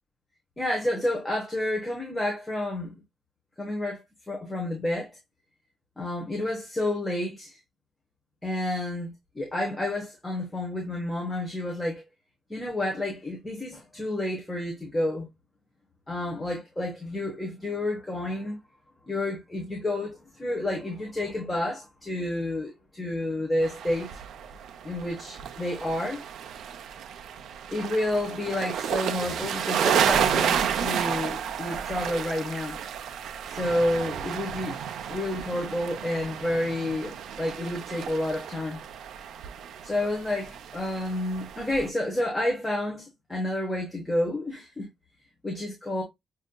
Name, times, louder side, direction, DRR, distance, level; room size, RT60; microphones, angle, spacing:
voice 1, 0.6-3.0 3.6-5.1 6.0-7.6 8.4-12.0 12.5-15.3 16.1-18.6 19.1-24.1 24.8-26.2 27.7-32.8 33.5-34.8 35.1-38.8 39.8-44.9 45.4-46.0, left 1 dB, 10° left, 1.1 m, -30 dB
sound 1, 23.6-41.9, right 8 dB, 70° right, 0.5 m, -31 dB
6.3 x 2.7 x 2.2 m
cardioid pair, 165°, 0 cm